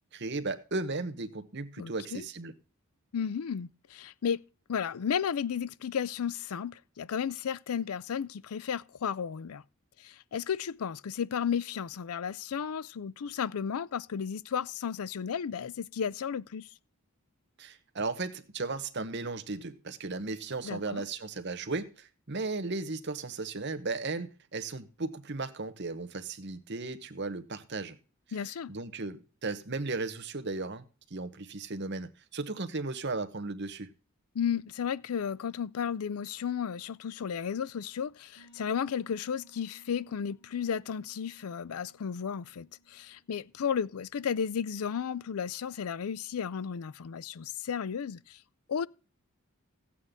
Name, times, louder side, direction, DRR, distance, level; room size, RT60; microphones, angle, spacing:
voice 1, 0.1-2.5 17.6-28.0 28.7-33.9, right 3 dB, 50° right, 1.0 m, -36 dB
voice 2, 1.8-2.2 3.1-4.4 4.7-9.6 10.0-16.7 20.6-21.1 28.3-28.7 34.3-48.4 48.7-48.9, left 7 dB, 85° left, 0.4 m, -33 dB
sound 1, 38.4-43.9, right 1 dB, 50° left, 3.6 m, -62 dB
14.5 x 8.5 x 3.6 m
head